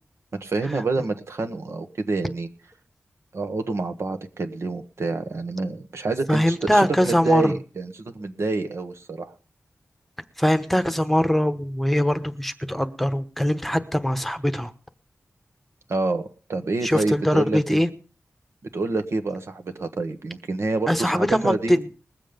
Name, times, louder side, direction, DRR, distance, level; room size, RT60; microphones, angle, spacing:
voice 1, 0.4-2.5 3.3-9.3 15.9-16.2 16.5-17.8 18.7-21.8, right 3 dB, 70° right, 7 dB, 1.3 m, -27 dB
voice 2, 6.3-7.5 10.4-14.7 16.8-17.9 20.9-21.9, equal, 5° left, 9 dB, 1.0 m, -22 dB
20.5 x 7.6 x 5.2 m, 0.38 s
wide cardioid pair, 95°, 5 cm